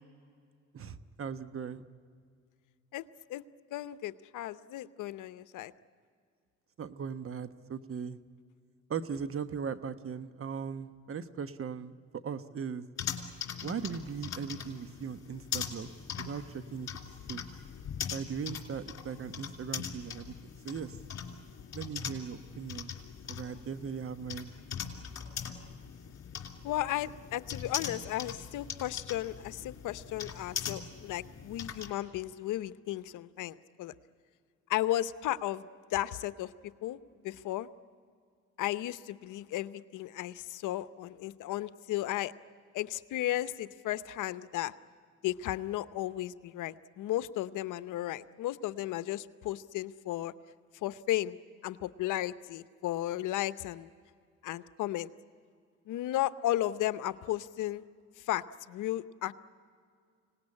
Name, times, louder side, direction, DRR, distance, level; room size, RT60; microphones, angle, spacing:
voice 1, 0.7-1.9 6.8-8.2 8.9-12.8 13.6-15.9 16.2-16.9 17.3-17.4 18.1-20.3 20.6-21.0 21.7-23.0 23.3-24.5, right 6 dB, 45° right, 12 dB, 1.2 m, -38 dB
voice 2, 3.7-5.7 26.6-33.9 34.7-36.5 36.8-37.0 37.2-37.7 38.6-42.3 42.7-44.7 45.2-50.3 50.8-51.4 51.6-53.9 54.4-55.1 55.9-57.8 58.3-58.4 58.7-59.3, left 14 dB, 85° left, 14 dB, 0.8 m, -34 dB
sound 1, 13.0-31.9, left 7 dB, 60° left, 3.0 m, -41 dB
25.5 x 18.5 x 9.8 m, 2.2 s
cardioid pair, 90°, 30 cm